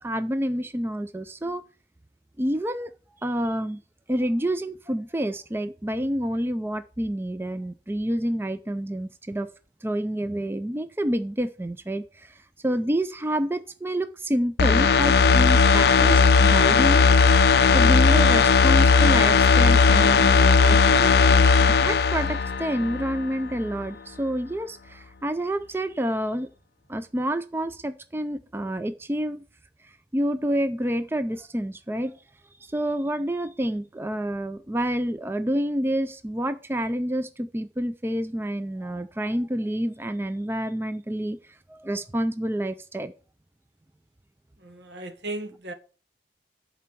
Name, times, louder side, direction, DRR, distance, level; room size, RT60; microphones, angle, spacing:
voice 1, 0.0-1.6 2.4-2.9 3.2-3.8 4.1-9.5 9.8-17.0 17.7-21.2 21.7-26.5 26.9-29.4 29.8-32.2 32.6-43.1, right 1 dB, 15° right, 0.4 m, -28 dB
sound 1, 14.6-23.3 23.6-23.7, left 5 dB, 60° left, 0.4 m, -17 dB
voice 2, 44.6-45.7, right 2 dB, 75° right, 1.3 m, -36 dB
11.5 x 4.6 x 5.9 m
head